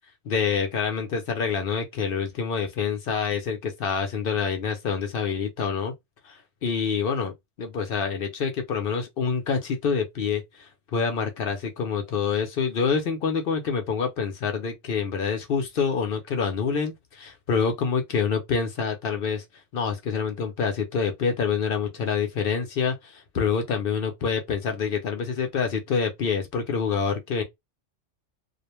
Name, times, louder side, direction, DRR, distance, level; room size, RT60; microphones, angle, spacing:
voice 1, 0.2-5.9 6.2-7.3 7.6-19.4 19.7-27.4, left 6 dB, 60° left, 0.7 m, -27 dB
2.4 x 2.1 x 2.9 m
omnidirectional pair, 1.2 m